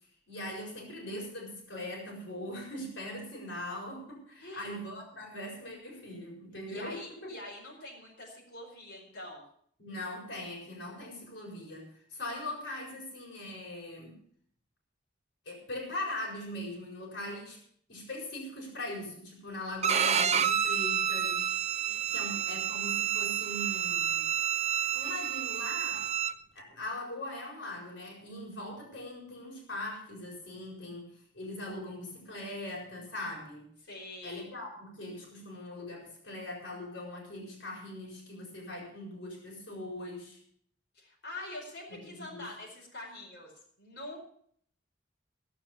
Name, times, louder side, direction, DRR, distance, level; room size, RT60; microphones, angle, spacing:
voice 1, 0.3-7.3 9.8-11.8 12.1-14.2 15.4-17.6 17.9-21.6 21.9-24.3 24.9-26.1 26.5-33.7 34.2-40.4 41.9-42.4, left 1 dB, 90° left, -1 dB, 4.6 m, -41 dB
voice 2, 4.4-4.8 6.7-9.4 21.9-22.6 33.8-34.5 40.9-43.5 43.8-44.2, left 1 dB, 65° left, -2 dB, 4.7 m, -45 dB
Bowed string instrument, 19.8-26.3, right 9 dB, 35° right, 0.6 m, -29 dB
16.0 x 7.8 x 6.7 m, 0.62 s
head